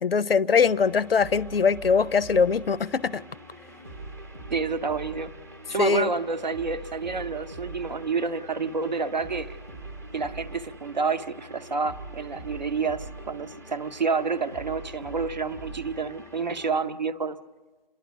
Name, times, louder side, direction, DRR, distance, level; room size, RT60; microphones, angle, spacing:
voice 1, 0.0-3.2 5.8-6.1, left 5 dB, 80° left, 19 dB, 0.7 m, -22 dB
sound 1, 0.5-16.8, right 2 dB, 15° right, 0.9 m, -43 dB
voice 2, 4.5-5.3 5.7-9.5 10.1-17.4, right 4 dB, 50° right, 11 dB, 0.8 m, -29 dB
28.5 x 11.5 x 9.1 m, 1.3 s
hypercardioid pair, 175°, 29 cm